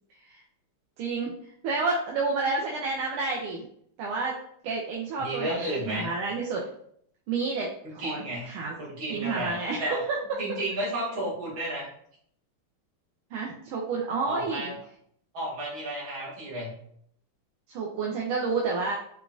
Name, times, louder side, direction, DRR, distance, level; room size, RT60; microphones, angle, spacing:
voice 1, 1.0-1.3 1.6-3.7 4.0-4.4 4.6-6.7 7.3-8.2 8.5-8.7 9.1-10.0 13.3-14.7 17.7-18.9, right 4 dB, 85° right, -2 dB, 1.5 m, -30 dB
voice 2, 5.2-6.1 7.8-10.0 10.4-11.9 14.2-14.7 15.3-16.7, right 1 dB, 65° right, -7 dB, 2.4 m, -32 dB
4.8 x 2.3 x 2.5 m, 0.67 s
omnidirectional pair, 2.3 m